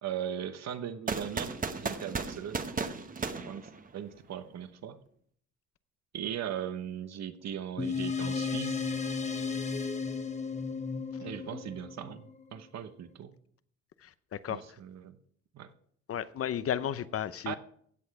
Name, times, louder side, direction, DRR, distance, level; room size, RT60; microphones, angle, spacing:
voice 1, 0.0-1.5 1.8-2.7 3.3-5.0 6.1-8.9 11.2-13.3 14.5-15.2 15.5-15.7 17.5-17.6, right 9 dB, 60° right, 1.0 m, -39 dB
sound 1, 1.1-4.3, right 4 dB, 30° right, 1.0 m, -35 dB
sound 2, 7.8-12.6, left 5 dB, 25° left, 1.1 m, -34 dB
voice 2, 14.0-14.6 16.1-17.5, left 9 dB, 50° left, 0.7 m, -33 dB
16.0 x 6.5 x 4.7 m
cardioid pair, 90°, 30 cm